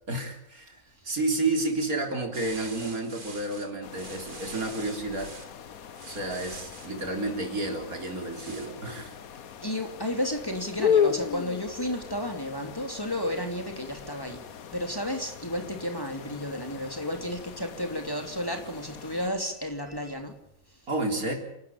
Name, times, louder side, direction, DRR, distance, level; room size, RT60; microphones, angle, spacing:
voice 1, 0.1-5.3 6.1-9.1 20.9-21.4, right 2 dB, 75° right, 4 dB, 4.3 m, -31 dB
sound 1, 2.3-5.5 5.9-6.9 8.3-8.7, right 3 dB, 35° right, 2.4 m, -45 dB
sound 2, 3.8-19.3, left 7 dB, 75° left, 1.5 m, -35 dB
voice 2, 9.6-14.4 14.7-20.4, equal, 15° left, 4 dB, 2.8 m, -32 dB
29.0 x 13.0 x 8.8 m, 0.78 s
omnidirectional pair, 1.5 m